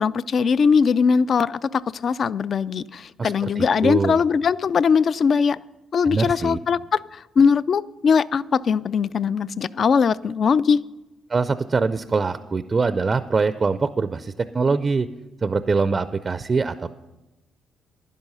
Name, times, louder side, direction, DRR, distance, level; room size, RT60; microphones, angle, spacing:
voice 1, 0.0-5.6 5.9-10.8, left 6 dB, 50° left, 18 dB, 0.3 m, -20 dB
voice 2, 3.2-4.2 6.0-6.6 11.3-15.1 15.4-16.9, right 4 dB, 35° right, 12 dB, 0.4 m, -23 dB
11.0 x 10.5 x 5.5 m, 1.0 s
cardioid pair, 90°, 0 cm